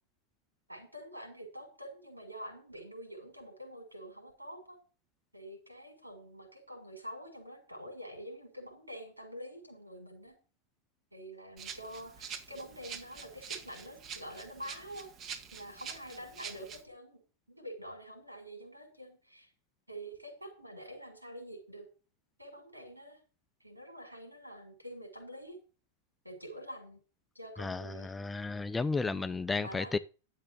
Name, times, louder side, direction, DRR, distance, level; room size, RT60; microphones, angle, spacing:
voice 1, 0.7-4.8 5.3-10.4 11.1-15.1 15.5-17.2 17.5-19.5 19.9-21.9 22.4-23.2 23.6-25.6 26.2-27.0 27.3-28.1 29.0-29.9, equal, 90° right, 6.5 m, -47 dB
Rattle (instrument), 11.6-16.8, right 7 dB, 30° right, 1.8 m, -46 dB
voice 2, 27.6-30.0, left 3 dB, 10° left, 0.6 m, -33 dB
12.0 x 7.7 x 6.8 m
figure-of-eight pair, 90°, 0 cm